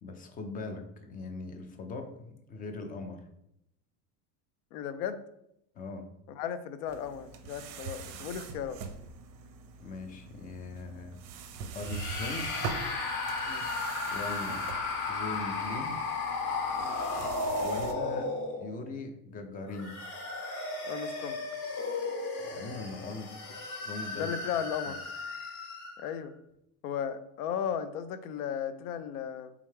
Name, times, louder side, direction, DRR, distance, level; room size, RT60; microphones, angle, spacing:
voice 1, 0.0-3.2 5.7-6.1 9.8-11.2 11.7-12.5 14.1-14.7 15.1-16.0 17.6-18.3 18.6-20.0 22.4-24.3, left 3 dB, 20° left, 6 dB, 0.3 m, -40 dB
voice 2, 4.7-5.2 6.3-8.8 13.4-13.7 16.8-17.0 20.8-21.5 24.1-25.0 26.0-26.3 26.8-29.5, left 8 dB, 80° left, 12 dB, 0.6 m, -35 dB
sound 1, 6.9-17.9, right 5 dB, 45° right, 0.5 m, -43 dB
sound 2, 11.8-18.9 19.6-26.1, left 3 dB, 45° left, 1.0 m, -35 dB
3.6 x 3.3 x 3.2 m, 0.79 s
supercardioid pair, 120°, 44 cm